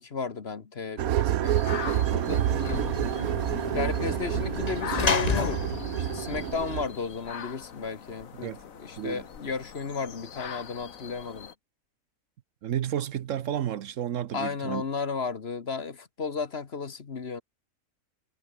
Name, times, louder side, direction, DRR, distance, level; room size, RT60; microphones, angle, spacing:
voice 1, 0.0-2.4 3.7-5.6 6.0-11.5 14.3-17.4, left 5 dB, 45° left, 1.6 m, -34 dB
sound 1, 1.0-6.9, right 12 dB, 85° right, 1.2 m, -28 dB
sound 2, 1.4-11.5, left 7 dB, 70° left, 1.7 m, -42 dB
Sliding door / Slam, 1.7-7.1, left 5 dB, 30° left, 1.0 m, -32 dB
voice 2, 12.6-14.8, right 10 dB, 65° right, 1.1 m, -31 dB
omnidirectional pair, 1.5 m